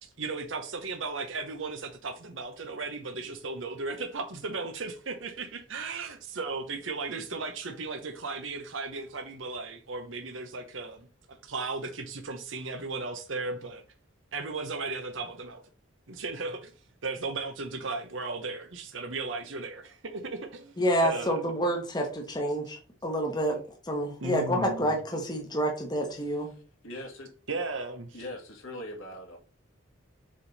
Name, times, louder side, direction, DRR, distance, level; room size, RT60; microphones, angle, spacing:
voice 1, 0.0-13.8 14.3-15.6 16.1-16.7 17.0-20.8 21.0-21.4 24.2-24.9 27.5-28.2, right 3 dB, 70° right, 0.9 m, -36 dB
voice 2, 20.8-26.5, equal, 20° left, 1.3 m, -28 dB
voice 3, 26.8-27.3 28.1-29.4, left 1 dB, 90° left, 2.4 m, -40 dB
7.4 x 3.5 x 4.1 m
head